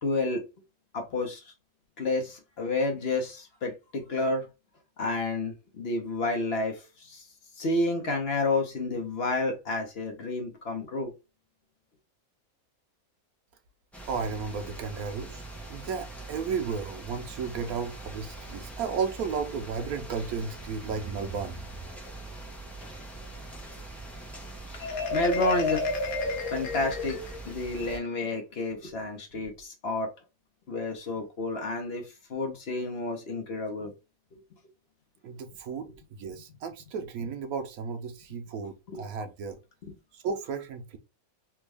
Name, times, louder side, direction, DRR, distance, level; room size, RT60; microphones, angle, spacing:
voice 1, 0.0-0.4 0.9-1.5 2.0-4.5 5.0-7.3 7.6-11.1 24.7-25.9 26.5-30.1 30.7-33.9 34.3-34.4 38.9-39.1 39.8-39.9, left 2 dB, 55° left, 0.9 m, -30 dB
sound 1, 13.9-28.0, right 2 dB, ahead, 0.4 m, -43 dB
voice 2, 14.1-15.4 15.7-21.6 35.2-35.9 36.2-38.7 39.0-39.6 40.2-41.0, right 5 dB, 90° right, 1.2 m, -33 dB
Marimba xylophone, 24.8-27.6, left 2 dB, 85° left, 1.2 m, -31 dB
3.5 x 2.2 x 3.3 m
omnidirectional pair, 1.5 m